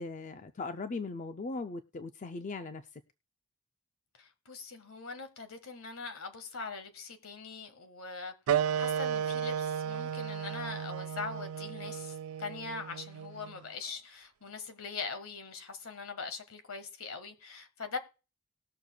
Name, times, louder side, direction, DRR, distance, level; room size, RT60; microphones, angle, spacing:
voice 1, 0.0-2.8, left 3 dB, 35° left, 0.4 m, -39 dB
voice 2, 4.2-8.3 8.8-18.0, left 4 dB, 70° left, 1.5 m, -42 dB
sound 1, 8.5-13.6, right 8 dB, 75° right, 0.3 m, -34 dB
20.0 x 6.6 x 2.2 m
head